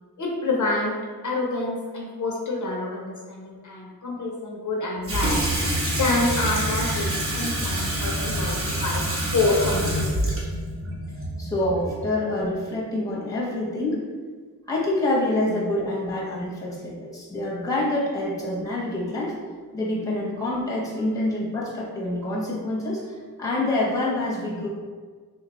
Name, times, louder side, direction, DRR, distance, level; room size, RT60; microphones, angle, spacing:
voice 1, 0.2-0.9 1.2-5.4 6.0-9.0 9.3-10.4, left 2 dB, 50° left, -3 dB, 0.5 m, -27 dB
Water tap faucet / Sink (filling or washing), 5.0-12.1, right 1 dB, 35° right, 0.7 m, -26 dB
voice 2, 11.4-14.0 14.7-19.3 19.7-23.0 23.4-24.7, left 1 dB, 10° left, -5 dB, 0.7 m, -26 dB
3.3 x 2.2 x 3.9 m, 1.5 s
wide cardioid pair, 160°, 38 cm